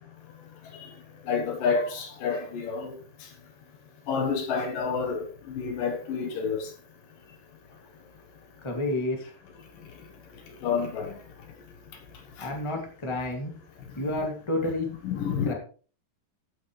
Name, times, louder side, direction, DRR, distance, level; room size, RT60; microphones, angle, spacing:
voice 1, 1.3-3.0 4.1-6.7 10.6-11.2 12.4-12.5 14.6-14.7 15.0-15.5, left 5 dB, 65° left, 2.6 m, -29 dB
voice 2, 8.6-9.3 12.4-13.5 14.0-14.9 15.4-15.5, left 1 dB, 15° left, 1.1 m, -30 dB
14.5 x 8.5 x 3.2 m
omnidirectional pair, 4.7 m